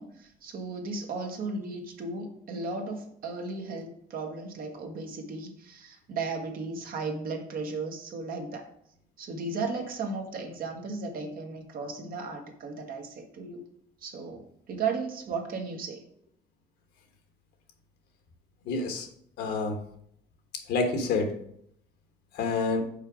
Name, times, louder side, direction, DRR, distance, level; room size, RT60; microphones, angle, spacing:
voice 1, 0.0-8.7 9.2-13.6 14.0-16.0, right 4 dB, 60° right, 3 dB, 1.3 m, -35 dB
voice 2, 18.6-19.1 19.4-19.8 20.7-21.3 22.3-22.8, left 3 dB, 75° left, 5 dB, 1.4 m, -27 dB
5.5 x 4.5 x 5.0 m, 0.69 s
cardioid pair, 110°, 17 cm